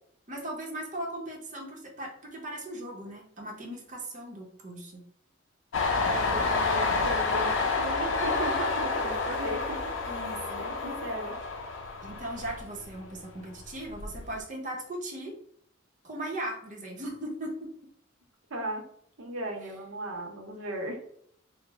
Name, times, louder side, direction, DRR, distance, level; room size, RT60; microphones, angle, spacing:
voice 1, 0.3-5.0 10.0-10.7 12.0-15.3 16.0-17.7, right 1 dB, 40° right, 0 dB, 0.7 m, -38 dB
Train, 5.7-13.1 13.5-14.3, left 3 dB, 70° left, 0.5 m, -29 dB
voice 2, 6.1-9.9 10.6-11.4 18.5-18.9 19.2-21.0, right 1 dB, 85° right, 2 dB, 0.7 m, -36 dB
3.0 x 2.0 x 3.4 m, 0.66 s
head